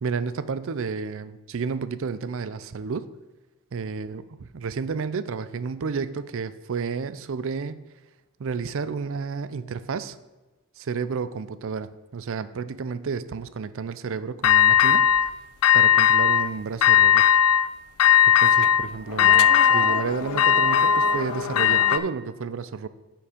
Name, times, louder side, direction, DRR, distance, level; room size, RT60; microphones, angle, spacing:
voice 1, 0.0-3.1 3.7-4.2 4.5-7.7 8.4-10.2 10.8-15.1 15.7-17.2 18.3-22.9, right 5 dB, 60° right, 14 dB, 0.5 m, -31 dB
sound 1, 14.4-15.3 15.6-16.5 16.8-17.7 18.0-22.0, left 9 dB, 75° left, 0.4 m, -18 dB
8.3 x 5.9 x 5.0 m, 1.1 s
head